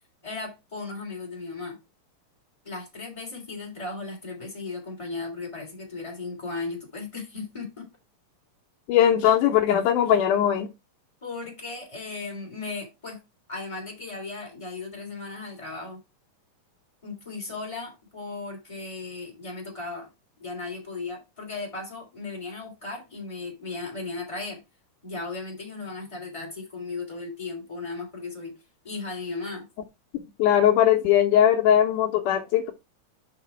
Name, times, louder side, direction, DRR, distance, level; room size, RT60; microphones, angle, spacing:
voice 1, 0.2-1.8 2.6-7.9 11.2-13.2 13.5-16.0 17.0-20.1 20.4-24.6 25.0-28.5 28.8-29.6, left 3 dB, 10° left, 2.9 m, -36 dB
voice 2, 8.9-10.7 30.4-32.7, left 10 dB, 80° left, 2.2 m, -20 dB
6.0 x 5.6 x 4.3 m
omnidirectional pair, 3.7 m